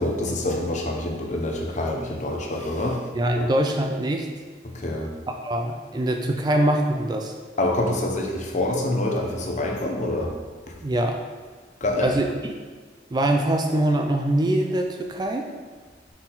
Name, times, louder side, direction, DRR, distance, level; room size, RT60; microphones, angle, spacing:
voice 1, 0.0-3.0 3.4-3.5 4.6-5.1 7.6-10.3 11.8-12.2, left 1 dB, 40° left, 1 dB, 0.8 m, -26 dB
voice 2, 3.1-4.3 5.4-7.3 10.8-11.2 12.0-12.3 13.1-15.5, right 1 dB, 20° right, 3 dB, 0.3 m, -23 dB
5.9 x 4.2 x 3.9 m, 1.5 s
head